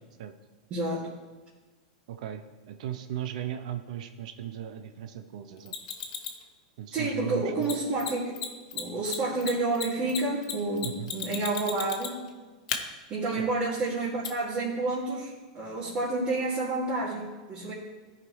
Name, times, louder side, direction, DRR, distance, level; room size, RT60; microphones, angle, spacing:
voice 1, 0.7-1.1 6.9-8.4 8.7-12.2 13.1-17.7, right 2 dB, 35° right, -8 dB, 2.3 m, -29 dB
voice 2, 2.1-5.7 6.8-7.7 10.8-11.1 13.4-13.5, right 11 dB, 70° right, 8 dB, 0.6 m, -37 dB
Mechanisms, 5.7-6.4 7.6-7.7 8.0-8.1 8.3-8.5 8.7-12.3 12.7-12.8 14.2-14.3, left 9 dB, 75° left, 1.0 m, -33 dB
14.0 x 5.0 x 3.2 m, 1.3 s
hypercardioid pair, 120°, 4 cm